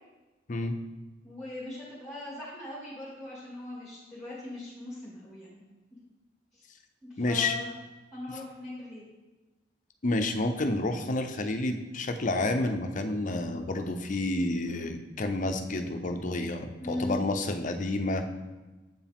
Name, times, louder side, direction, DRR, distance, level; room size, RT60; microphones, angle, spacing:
voice 1, 1.2-5.6 6.5-6.6 7.0-7.7 8.1-9.0 16.8-17.2, left 2 dB, ahead, -7 dB, 1.6 m, -39 dB
voice 2, 7.2-7.5 10.0-18.2, left 2 dB, 45° left, 6 dB, 0.6 m, -29 dB
7.9 x 4.8 x 3.5 m, 1.2 s
head